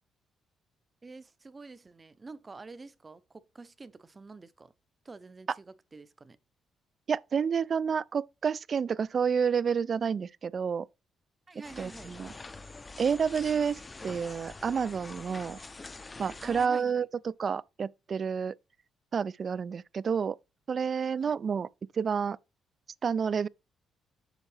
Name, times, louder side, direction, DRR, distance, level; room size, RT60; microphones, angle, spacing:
voice 1, 1.0-4.7 5.0-6.4 11.5-12.1 16.4-17.1 21.0-21.4, right 3 dB, 25° right, 0.7 m, -48 dB
voice 2, 7.1-10.9 11.8-12.3 13.0-15.6 16.2-18.6 19.1-20.4 20.7-21.7 21.9-22.4 23.0-23.5, right 6 dB, 45° right, 0.3 m, -29 dB
sound 1, 11.6-16.7, left 3 dB, 25° left, 0.6 m, -45 dB
7.2 x 6.8 x 3.3 m
cardioid pair, 90°, 0 cm